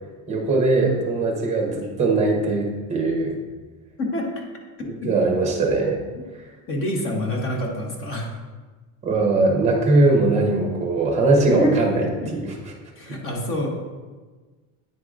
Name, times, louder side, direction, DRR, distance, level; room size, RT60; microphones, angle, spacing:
voice 1, 0.3-3.4 4.9-6.0 6.3-6.4 9.0-12.6 13.1-13.2, right 2 dB, 15° right, 1 dB, 0.9 m, -20 dB
voice 2, 4.0-4.4 4.8-5.1 6.1-6.2 6.7-8.4 11.6-12.3 13.0-13.7, equal, 35° left, 1 dB, 0.9 m, -27 dB
9.0 x 4.7 x 2.4 m, 1.3 s
cardioid pair, 170°, 39 cm